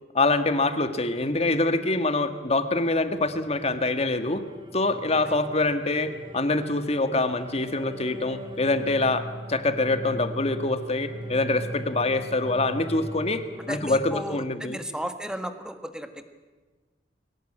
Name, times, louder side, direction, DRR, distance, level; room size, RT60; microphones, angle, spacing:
voice 1, 0.1-4.4 4.7-14.8, left 2 dB, 35° left, 10 dB, 1.6 m, -25 dB
sound 1, 3.1-14.0, right 1 dB, 25° right, 2.3 m, -39 dB
voice 2, 13.7-16.3, right 1 dB, 5° right, 9 dB, 1.5 m, -35 dB
22.5 x 18.0 x 8.7 m, 1.3 s
head